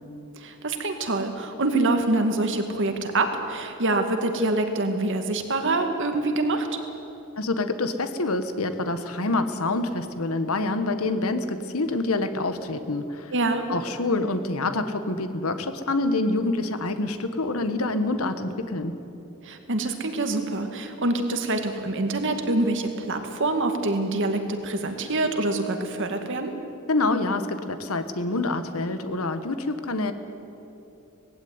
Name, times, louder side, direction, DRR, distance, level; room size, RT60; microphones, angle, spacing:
voice 1, 0.4-6.8 13.3-13.7 19.4-26.5, right 2 dB, 60° right, 6 dB, 2.1 m, -25 dB
voice 2, 7.4-13.3 13.7-19.0 26.9-30.1, left 2 dB, 70° left, 10 dB, 1.3 m, -26 dB
19.0 x 16.0 x 9.6 m, 2.9 s
head